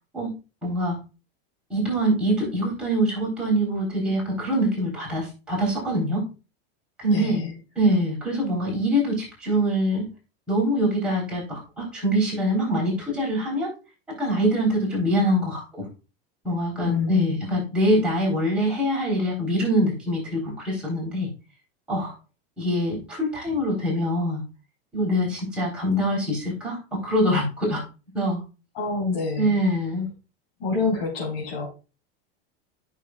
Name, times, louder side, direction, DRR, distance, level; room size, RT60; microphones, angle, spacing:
voice 1, 0.6-1.0 1.7-6.2 7.0-7.4 7.8-10.1 10.5-13.7 14.2-15.8 16.4-21.3 21.9-22.1 22.6-24.4 24.9-26.8 27.0-27.8 28.1-28.4 29.4-30.1, equal, 5° right, -5 dB, 4.0 m, -24 dB
voice 2, 7.1-7.5 16.9-17.3 28.7-29.6 30.6-31.7, left 4 dB, 50° left, -6 dB, 3.8 m, -27 dB
13.5 x 6.2 x 2.4 m, 0.32 s
supercardioid pair, 170°, 30 cm